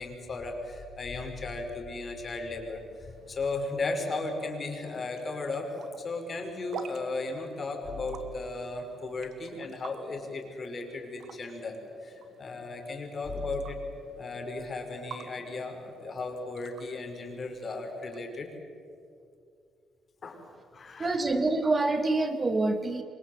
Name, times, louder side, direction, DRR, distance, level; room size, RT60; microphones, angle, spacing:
voice 1, 0.0-13.8 14.2-18.5 20.2-20.4 20.7-21.1, left 3 dB, 40° left, 4 dB, 5.5 m, -35 dB
sound 1, 2.6-18.2, right 6 dB, 65° right, 1.8 m, -50 dB
voice 2, 21.0-23.0, right 2 dB, 30° right, 8 dB, 2.1 m, -26 dB
28.0 x 24.5 x 8.1 m, 2.5 s
cardioid pair, 90°, 0 cm